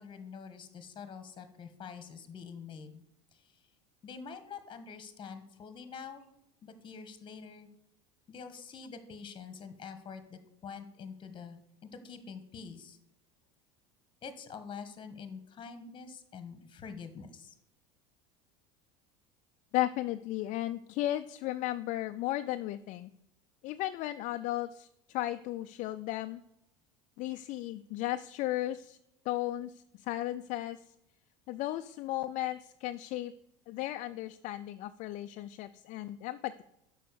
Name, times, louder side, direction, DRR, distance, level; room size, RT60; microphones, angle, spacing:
voice 1, 0.0-3.0 3.3-3.6 4.0-6.2 6.6-7.7 8.3-13.0 14.2-17.6, left 6 dB, 30° left, 10 dB, 1.4 m, -46 dB
voice 2, 19.7-23.1 23.6-26.4 27.2-29.0 29.3-30.8 31.5-33.3 33.7-36.6, left 15 dB, 55° left, 9 dB, 0.4 m, -35 dB
6.8 x 5.5 x 6.7 m, 0.82 s
supercardioid pair, 100°, 16 cm